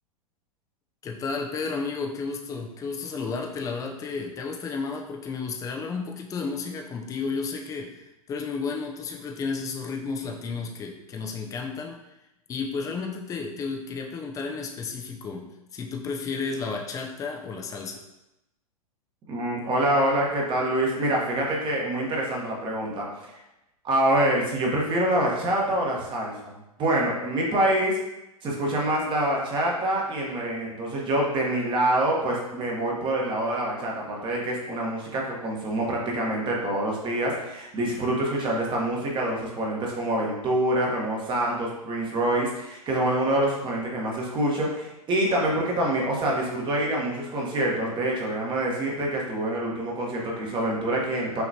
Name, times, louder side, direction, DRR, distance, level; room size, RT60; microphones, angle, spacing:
voice 1, 1.0-12.0 12.5-18.0, left 4 dB, 15° left, 2 dB, 0.5 m, -32 dB
voice 2, 19.3-23.3 23.8-28.0 28.4-51.4, right 1 dB, 25° right, -2 dB, 1.2 m, -26 dB
5.8 x 3.0 x 2.8 m, 0.92 s
hypercardioid pair, 105°, 19 cm